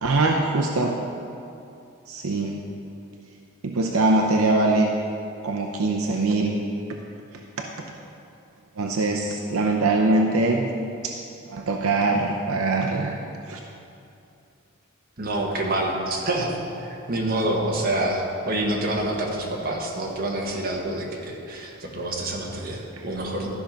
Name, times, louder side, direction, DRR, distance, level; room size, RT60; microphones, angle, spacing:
voice 1, 0.0-1.0 2.1-2.6 3.6-4.9 5.4-6.6 7.6-7.7 8.8-10.6 11.0-11.2 11.5-13.2 13.5-13.6, right 2 dB, 80° right, 1 dB, 0.7 m, -22 dB
voice 2, 15.2-23.5, right 1 dB, 45° right, -1 dB, 1.4 m, -27 dB
13.0 x 5.7 x 5.2 m, 2.6 s
head